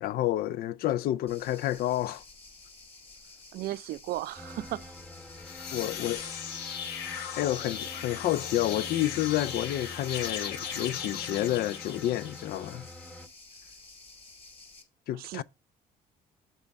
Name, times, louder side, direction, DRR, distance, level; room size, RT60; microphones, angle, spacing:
voice 1, 0.0-2.2 5.7-6.2 7.3-12.9 15.1-15.4, left 13 dB, 65° left, 0.4 m, -29 dB
sound 1, 1.3-14.8, left 3 dB, 35° left, 2.0 m, -52 dB
voice 2, 3.5-4.9 15.2-15.4, right 15 dB, 65° right, 0.4 m, -35 dB
sound 2, 4.4-13.3, left 1 dB, 5° left, 0.9 m, -46 dB
sound 3, 5.2-12.7, left 8 dB, 85° left, 1.1 m, -38 dB
7.4 x 3.5 x 5.2 m
cardioid pair, 110°, 17 cm